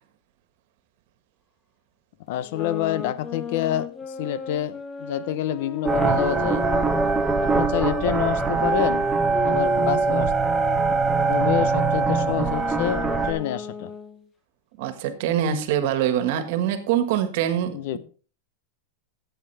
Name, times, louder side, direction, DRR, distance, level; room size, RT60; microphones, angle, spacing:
voice 1, 2.3-6.7 7.4-9.1 9.4-10.3 11.3-13.9 17.7-18.0, left 12 dB, 55° left, 0.7 m, -27 dB
sound 1, 2.4-8.0 8.6-14.2, left 2 dB, 15° left, 0.9 m, -34 dB
sound 2, 5.8-13.3, right 4 dB, 5° right, 1.1 m, -22 dB
voice 2, 14.8-18.0, right 10 dB, 55° right, 1.5 m, -24 dB
13.0 x 8.0 x 3.4 m
supercardioid pair, 155°, 0 cm